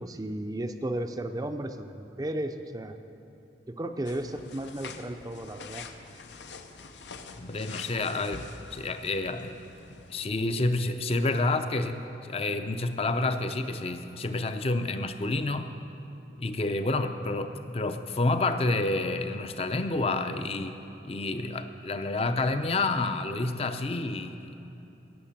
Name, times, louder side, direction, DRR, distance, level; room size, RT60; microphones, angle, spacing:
voice 1, 0.0-3.0 3.7-5.8, right 1 dB, 20° right, 7 dB, 0.5 m, -34 dB
sound 1, 4.1-10.3, left 4 dB, 80° left, 0.7 m, -46 dB
voice 2, 7.4-9.6 10.1-15.7 16.4-20.8 21.0-24.6, left 2 dB, 35° left, 9 dB, 0.6 m, -29 dB
17.0 x 6.6 x 7.3 m, 2.9 s
head